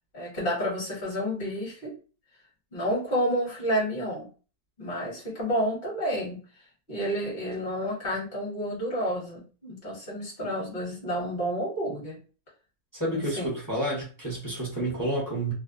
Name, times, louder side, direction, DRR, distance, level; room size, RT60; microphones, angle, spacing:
voice 1, 0.1-1.9 2.7-4.3 4.8-6.4 6.9-12.2 13.4-13.5, equal, 40° left, -4 dB, 1.0 m, -30 dB
voice 2, 12.9-15.5, right 1 dB, 15° left, -5 dB, 0.8 m, -30 dB
2.7 x 2.2 x 2.5 m, 0.36 s
omnidirectional pair, 1.7 m